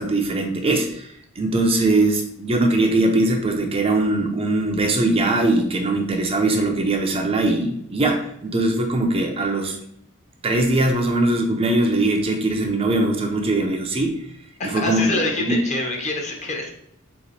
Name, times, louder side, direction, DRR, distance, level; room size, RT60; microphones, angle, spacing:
voice 1, 0.0-9.8 10.4-14.2 14.6-15.2 15.5-15.6, right 2 dB, 30° right, 2 dB, 0.5 m, -21 dB
voice 2, 14.6-16.7, left 2 dB, 35° left, 1 dB, 0.9 m, -26 dB
3.5 x 2.9 x 4.0 m, 0.72 s
head